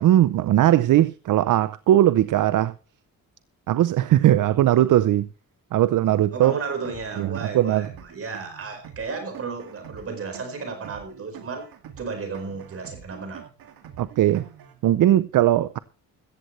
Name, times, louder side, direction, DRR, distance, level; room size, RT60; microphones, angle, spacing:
voice 1, 0.0-2.7 3.7-5.3 5.7-6.5 7.2-7.9 14.0-14.5 14.8-15.8, right 13 dB, 60° right, 0.6 m, -19 dB
voice 2, 6.3-11.7 12.0-13.5, right 4 dB, 40° right, 4.6 m, -33 dB
sound 1, 6.8-14.8, right 8 dB, 80° right, 2.2 m, -45 dB
16.0 x 14.5 x 3.2 m
cardioid pair, 175°, 35 cm